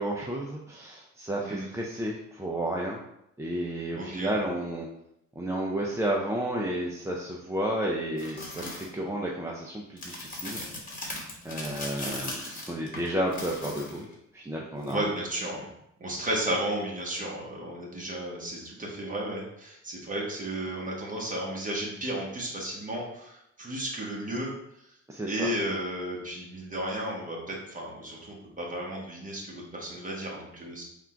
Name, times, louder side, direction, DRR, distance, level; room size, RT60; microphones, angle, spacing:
voice 1, 0.0-3.0 3.4-4.9 5.4-10.6 11.4-14.1 14.3-15.1 25.1-25.5, right 1 dB, 10° right, -2 dB, 0.5 m, -32 dB
voice 2, 4.0-4.4 12.0-12.1 14.9-15.7 16.0-24.5 25.3-30.8, right 1 dB, 25° right, -3 dB, 1.3 m, -33 dB
sound 1, 8.2-8.9 10.0-14.1 14.8-14.9, left 2 dB, 30° left, 1.3 m, -38 dB
3.6 x 2.5 x 4.4 m, 0.81 s
cardioid pair, 90°, 30 cm